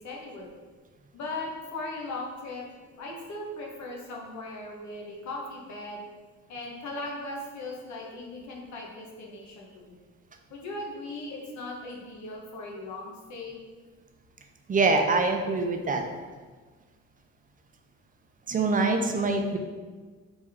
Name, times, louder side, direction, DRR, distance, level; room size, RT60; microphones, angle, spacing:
voice 1, 0.0-0.5 1.1-2.7 3.0-6.0 6.5-10.0 10.5-13.6, left 2 dB, 70° left, -1 dB, 1.0 m, -38 dB
voice 2, 14.7-16.0 18.5-19.6, right 3 dB, 30° right, 4 dB, 0.4 m, -24 dB
3.4 x 3.1 x 3.5 m, 1.4 s
cardioid pair, 90°, 30 cm